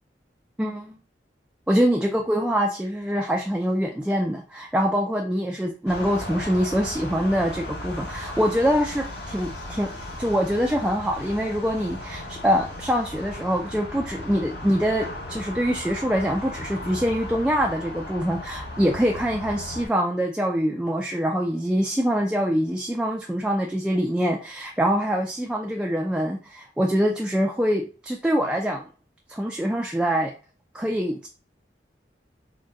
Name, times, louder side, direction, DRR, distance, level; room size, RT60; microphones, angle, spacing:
voice 1, 0.6-1.0 1.7-9.9 10.2-28.9 29.3-30.3 30.7-31.3, equal, 5° right, 1 dB, 0.3 m, -24 dB
sound 1, 5.9-19.9, left 1 dB, 65° left, 1.1 m, -36 dB
3.9 x 2.2 x 3.6 m, 0.37 s
head